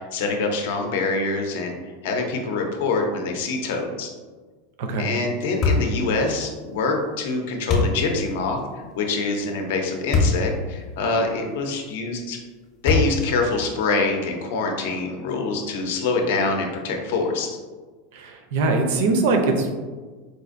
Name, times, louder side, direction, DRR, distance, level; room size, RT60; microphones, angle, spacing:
voice 1, 0.0-4.1 5.0-8.6 8.9-12.4 12.8-17.6, left 3 dB, 70° left, 3 dB, 0.6 m, -25 dB
sound 1, 5.6-6.0 7.7-8.0 10.1-10.4 11.0-11.1 12.9-13.3, left 3 dB, 30° left, 0.7 m, -20 dB
voice 2, 18.1-19.7, right 3 dB, 60° right, 4 dB, 0.5 m, -22 dB
4.3 x 2.5 x 2.5 m, 1.4 s
supercardioid pair, 170°, 0 cm